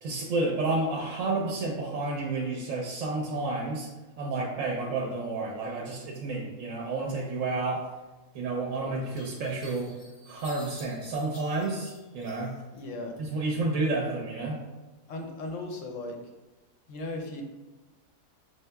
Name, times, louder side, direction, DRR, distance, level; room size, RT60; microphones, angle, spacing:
voice 1, 0.0-3.9 4.2-7.8 8.3-9.9 10.3-12.5 13.2-14.6, right 3 dB, 65° right, -1 dB, 0.9 m, -30 dB
sound 1, 9.1-12.8 13.2-13.9, left 1 dB, 80° left, 0.3 m, -51 dB
voice 2, 12.7-13.1 15.1-16.2 16.9-17.4, left 2 dB, 65° left, 2 dB, 0.8 m, -36 dB
6.1 x 2.7 x 2.2 m, 1.1 s
omnidirectional pair, 1.7 m